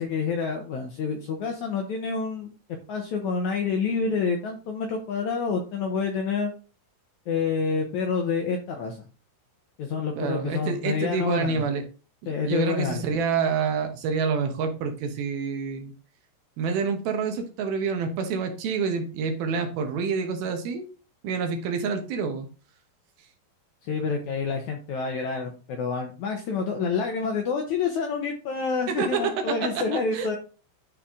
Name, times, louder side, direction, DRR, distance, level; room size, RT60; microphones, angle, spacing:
voice 1, 0.0-2.5 2.9-6.5 7.3-9.0 9.8-11.6 12.3-13.1 23.8-30.4, left 5 dB, 70° left, 3 dB, 1.8 m, -28 dB
voice 2, 10.2-11.8 12.2-15.9 16.6-20.9 21.2-22.5 28.9-30.3, right 5 dB, 75° right, 6 dB, 2.9 m, -27 dB
11.5 x 4.3 x 3.7 m, 0.34 s
omnidirectional pair, 4.5 m